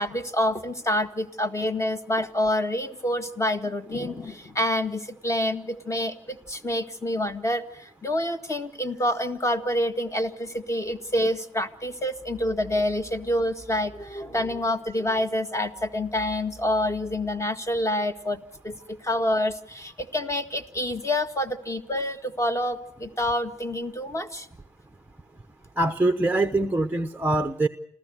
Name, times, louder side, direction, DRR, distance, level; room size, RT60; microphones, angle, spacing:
voice 1, 0.0-24.5, left 1 dB, 15° left, 8 dB, 1.8 m, -27 dB
voice 2, 25.8-27.7, right 2 dB, 10° right, 7 dB, 0.9 m, -23 dB
27.5 x 15.0 x 7.8 m, 0.75 s
cardioid pair, 90°, 20 cm